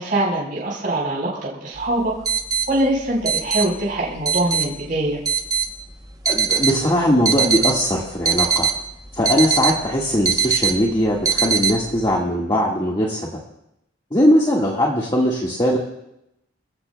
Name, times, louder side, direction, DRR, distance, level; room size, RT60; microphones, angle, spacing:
voice 1, 0.0-2.1 2.7-5.2, right 1 dB, 45° right, -4 dB, 4.2 m, -23 dB
sound 1, 1.8-12.1, right 6 dB, 20° right, 0.8 m, -23 dB
voice 2, 6.3-8.7 9.1-13.3 14.1-15.8, equal, 25° left, -3 dB, 1.6 m, -20 dB
27.0 x 15.5 x 2.3 m, 0.83 s
head